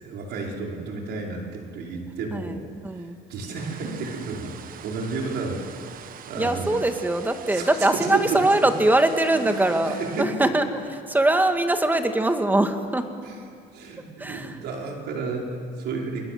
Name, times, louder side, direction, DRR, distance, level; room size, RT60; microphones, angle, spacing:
voice 1, 0.0-2.6 2.9-3.0 3.3-6.8 7.5-8.4 9.3-9.4 9.7-10.3 13.2-13.3 13.7-16.2, right 4 dB, 75° right, 0 dB, 5.3 m, -32 dB
voice 2, 2.8-3.2 6.3-13.1 14.2-14.6, right 1 dB, 10° right, 6 dB, 2.1 m, -22 dB
sound 1, 3.5-10.2, right 9 dB, 55° right, 1.2 m, -43 dB
29.0 x 21.0 x 7.9 m, 2.3 s
cardioid pair, 110°, 17 cm